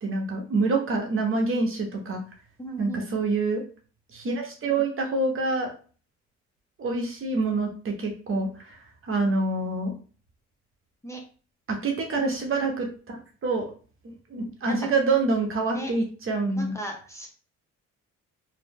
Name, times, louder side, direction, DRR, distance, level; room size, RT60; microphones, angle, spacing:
voice 1, 0.0-2.2 2.8-3.6 4.1-5.7 6.8-9.9 11.7-13.7 14.3-16.7, right 3 dB, 45° right, 2 dB, 1.1 m, -26 dB
voice 2, 2.6-3.1 11.0-11.2 14.6-14.7 15.7-15.9 16.5-17.3, right 1 dB, 10° left, 0 dB, 0.7 m, -36 dB
2.8 x 2.5 x 3.6 m, 0.39 s
cardioid pair, 90°, 30 cm